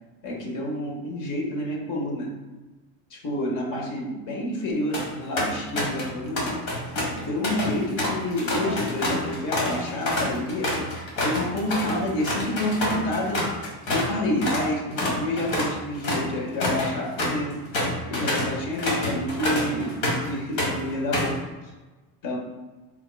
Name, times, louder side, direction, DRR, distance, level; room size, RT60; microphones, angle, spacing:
voice 1, 0.2-2.3 3.1-6.5 7.1-10.7 11.2-13.4 13.9-17.6 18.1-21.3 22.2-22.4, left 1 dB, 55° left, -1 dB, 1.1 m, -29 dB
sound 1, 4.7-5.1 5.4-6.1 6.4-14.1 14.4-14.7 15.0-20.3 20.6-21.4, left 1 dB, 85° left, 1.4 m, -27 dB
4.5 x 3.7 x 2.2 m, 1.2 s
cardioid pair, 150°, 38 cm